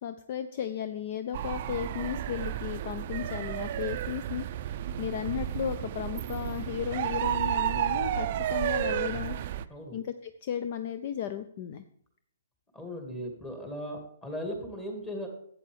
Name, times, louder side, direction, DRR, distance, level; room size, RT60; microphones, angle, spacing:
voice 1, 0.0-9.4 9.9-11.8, left 9 dB, 45° left, 10 dB, 0.5 m, -35 dB
sound 1, 1.3-9.7, right 11 dB, 45° right, 0.4 m, -32 dB
voice 2, 12.7-15.3, equal, 15° left, 2 dB, 2.3 m, -37 dB
11.0 x 8.3 x 3.5 m, 0.68 s
hypercardioid pair, 135°, 0 cm